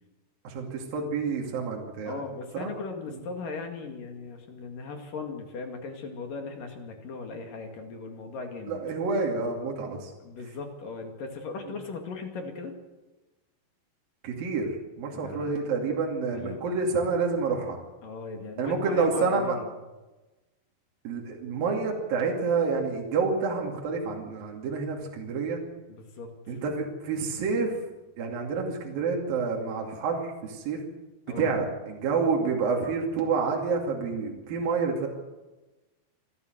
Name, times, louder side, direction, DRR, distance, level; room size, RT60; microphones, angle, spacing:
voice 1, 0.4-2.2 2.5-2.7 8.7-10.1 14.2-17.8 18.6-19.6 21.0-25.6 26.5-27.8 28.2-30.8 31.4-35.1, right 4 dB, 60° right, 0 dB, 4.2 m, -28 dB
voice 2, 2.1-8.8 10.2-12.7 15.1-15.5 16.3-16.7 18.0-19.7 25.9-26.3 31.3-31.5, left 4 dB, 55° left, 4 dB, 3.6 m, -38 dB
27.0 x 12.5 x 8.0 m, 1.1 s
omnidirectional pair, 4.9 m